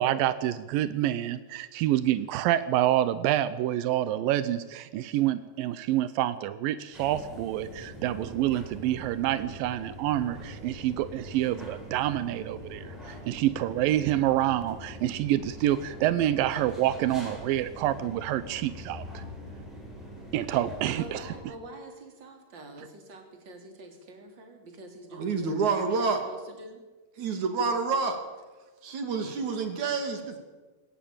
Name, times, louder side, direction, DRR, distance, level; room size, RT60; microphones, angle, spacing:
voice 1, 0.0-19.3 20.3-21.2, right 13 dB, 85° right, 14 dB, 2.5 m, -27 dB
sound 1, 6.9-21.4, equal, ahead, 6.7 m, -43 dB
voice 2, 20.9-26.8, right 1 dB, 35° right, 4 dB, 3.8 m, -46 dB
voice 3, 25.1-26.2 27.2-28.2 28.8-30.4, right 4 dB, 60° right, 6 dB, 3.9 m, -28 dB
21.5 x 17.0 x 8.8 m, 1.2 s
omnidirectional pair, 3.9 m